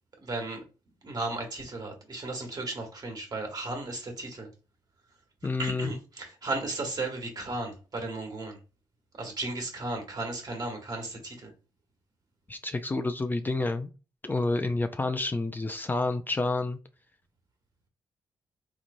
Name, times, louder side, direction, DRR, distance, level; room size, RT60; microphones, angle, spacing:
voice 1, 0.2-0.6 1.0-4.5 5.6-8.6 9.2-11.5, right 2 dB, 45° right, 1.6 m, -35 dB
voice 2, 5.4-5.9 12.5-13.9 14.2-16.8, left 2 dB, 20° left, 0.4 m, -29 dB
3.8 x 3.0 x 2.6 m
cardioid pair, 70°, 9 cm